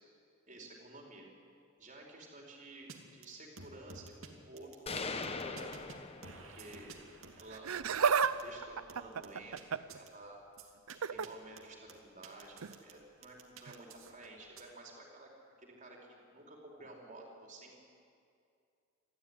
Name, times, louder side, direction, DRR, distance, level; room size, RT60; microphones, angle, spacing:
voice 1, 0.5-1.3 1.8-5.8 6.1-7.0 7.3-7.7 8.4-10.4 11.1-15.3 15.6-17.8, right 2 dB, 35° right, -1 dB, 4.8 m, -52 dB
sound 1, 2.9-3.0 3.2-3.3 3.6-4.3 4.6-6.0 6.2-8.4 8.9-9.6 9.9-10.1 10.6-11.0 11.2-11.3 11.6-12.9 13.2-14.6, right 4 dB, 65° right, 2.6 m, -52 dB
sound 2, 4.9-6.8, left 4 dB, 30° left, 1.0 m, -41 dB
Laughter, 7.5-8.3 8.6-10.0 10.9-11.3 12.6-12.8 13.7-13.8, right 6 dB, 85° right, 0.7 m, -31 dB
26.5 x 14.0 x 9.9 m, 2.4 s
head